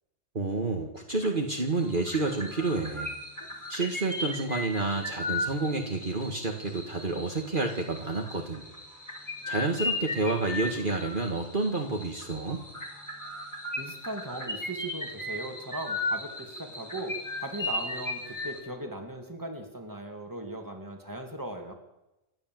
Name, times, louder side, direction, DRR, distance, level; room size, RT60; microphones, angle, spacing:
voice 1, 0.3-3.1 3.7-8.7 9.5-12.6, right 3 dB, 45° right, 3 dB, 2.1 m, -29 dB
sound 1, 1.2-1.5 1.8-18.6, left 2 dB, 15° left, 3.8 m, -36 dB
voice 2, 13.8-21.7, right 1 dB, 15° right, 4 dB, 2.7 m, -38 dB
28.5 x 12.0 x 7.8 m, 0.99 s
omnidirectional pair, 1.3 m